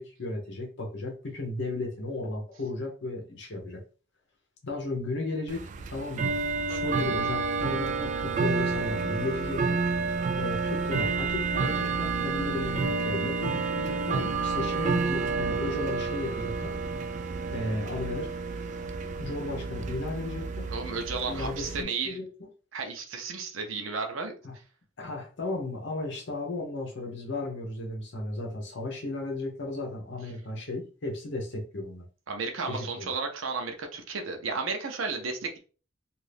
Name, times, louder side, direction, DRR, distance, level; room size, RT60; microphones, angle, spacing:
voice 1, 0.0-3.8 4.6-6.3 6.7-9.8 10.4-16.7 17.5-18.3 19.2-20.7 21.3-22.3 24.4-24.5 25.0-32.0 32.7-33.1, left 2 dB, 65° left, 1 dB, 0.9 m, -35 dB
Bell / Tick-tock, 5.5-21.8, right 4 dB, 40° right, 0.3 m, -30 dB
voice 2, 20.7-22.2 22.7-24.3 32.3-35.6, right 4 dB, 80° right, 4 dB, 0.6 m, -33 dB
2.6 x 2.5 x 3.3 m, 0.37 s
head